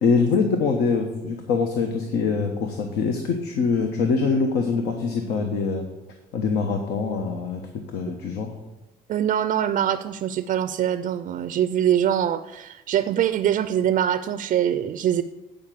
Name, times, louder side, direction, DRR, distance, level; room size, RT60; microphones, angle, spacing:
voice 1, 0.0-5.9 6.3-7.7 7.9-8.5, left 4 dB, 80° left, 4 dB, 1.1 m, -24 dB
voice 2, 9.1-15.2, right 10 dB, 50° right, 11 dB, 0.4 m, -23 dB
8.7 x 5.2 x 7.5 m, 1.0 s
cardioid pair, 110°, 17 cm